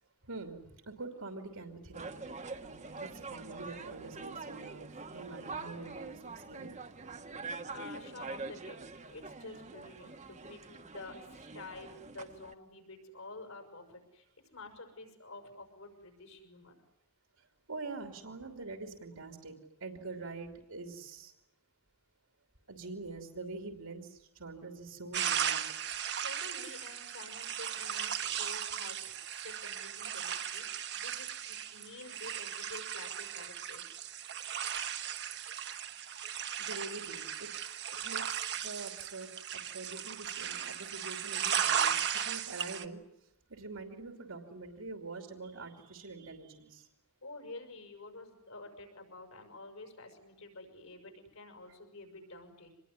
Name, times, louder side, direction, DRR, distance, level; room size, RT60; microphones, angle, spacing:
voice 1, 0.2-6.7 17.4-19.5 19.8-21.3 22.7-25.9 36.6-37.5 38.0-43.0 43.5-46.9, right 3 dB, 75° right, 4 dB, 2.9 m, -45 dB
sound 1, 1.9-12.5, right 3 dB, 30° right, 1.2 m, -45 dB
voice 2, 7.7-14.3 14.5-16.8 26.2-34.1 47.2-52.7, left 2 dB, 75° left, 5 dB, 5.9 m, -49 dB
sound 2, 25.1-42.8, right 9 dB, 50° right, 1.3 m, -36 dB
26.0 x 21.0 x 9.7 m, 0.85 s
head